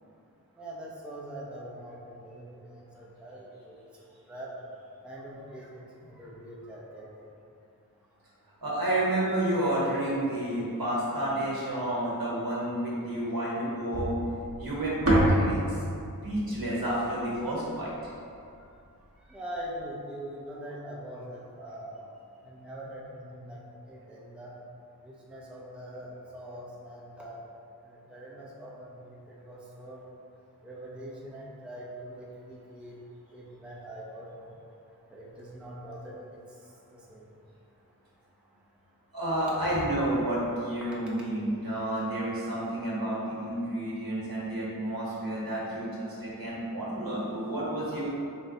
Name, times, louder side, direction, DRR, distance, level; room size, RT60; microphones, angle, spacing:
voice 1, 0.6-3.8 4.3-4.5 5.0-7.3 19.2-22.0 22.4-24.5 25.0-27.4 27.8-30.0 30.6-33.0 33.3-34.5 35.1-37.2 39.5-39.8, right 1 dB, 5° right, -5 dB, 0.6 m, -43 dB
voice 2, 8.6-14.1 14.6-15.6 16.2-17.9 39.1-48.1, right 1 dB, 70° right, -6 dB, 1.2 m, -30 dB
sound 1, 13.9-18.2, right 1 dB, 40° right, 0.7 m, -28 dB
3.9 x 3.3 x 2.7 m, 2.5 s
wide cardioid pair, 60°, 36 cm